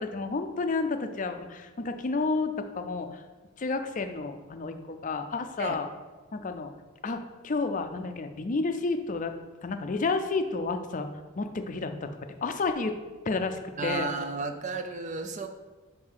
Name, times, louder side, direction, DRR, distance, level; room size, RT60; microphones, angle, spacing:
voice 1, 0.0-3.2 3.6-5.9 6.3-6.7 7.0-9.3 9.6-11.1 11.4-12.1 12.4-12.9 13.2-14.1, left 3 dB, 40° left, 7 dB, 0.4 m, -30 dB
voice 2, 13.8-15.5, right 3 dB, 35° right, 7 dB, 0.5 m, -33 dB
4.8 x 4.6 x 5.6 m, 1.3 s
head